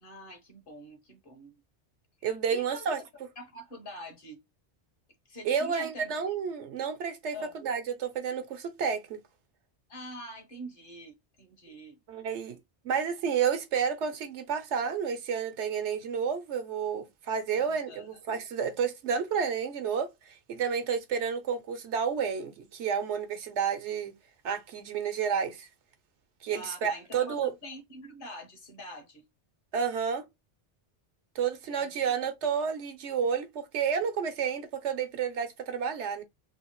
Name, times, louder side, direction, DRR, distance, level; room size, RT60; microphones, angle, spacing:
voice 1, 0.0-1.6 2.5-3.1 3.4-4.4 5.3-6.1 7.3-7.6 9.9-12.0 17.7-18.1 26.4-29.2 31.7-32.0, equal, 50° left, 1.3 m, -45 dB
voice 2, 2.2-3.0 5.4-9.2 12.1-12.6 12.8-24.1 24.4-25.7 26.4-27.5 29.7-30.3 31.3-36.2, right 7 dB, 80° right, 1.1 m, -30 dB
3.4 x 2.8 x 3.0 m
omnidirectional pair, 1.2 m